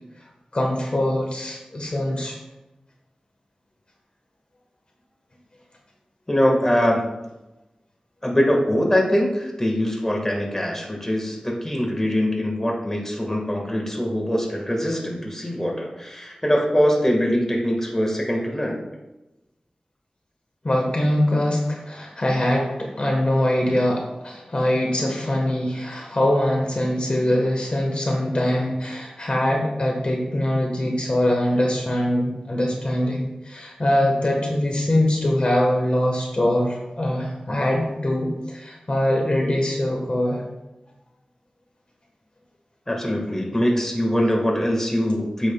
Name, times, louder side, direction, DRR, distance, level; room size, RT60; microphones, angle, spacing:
voice 1, 0.5-2.3 20.6-40.4, left 1 dB, 50° left, 0 dB, 1.3 m, -23 dB
voice 2, 6.3-7.2 8.2-18.8 42.9-45.5, equal, 20° left, 0 dB, 1.6 m, -22 dB
8.7 x 7.9 x 2.3 m, 1.0 s
wide cardioid pair, 65°, 2 cm